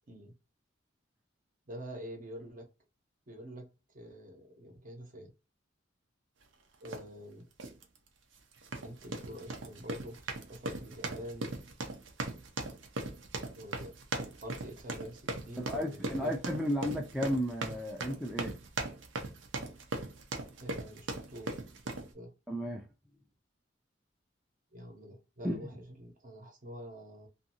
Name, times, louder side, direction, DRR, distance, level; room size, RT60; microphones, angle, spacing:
voice 1, 1.7-2.7 3.3-3.7 3.9-5.3 6.8-7.5 8.8-10.2 10.5-11.5 13.5-13.9 14.4-16.3 20.6-21.5 21.8-22.3 24.7-27.3, equal, 45° right, 0.9 m, -46 dB
sound 1, 6.9-7.1 7.6-7.8 8.6-22.1, right 2 dB, 80° right, 0.7 m, -39 dB
voice 2, 15.6-18.5 22.5-22.9 25.4-25.7, equal, 5° right, 0.4 m, -33 dB
2.6 x 2.5 x 2.7 m
head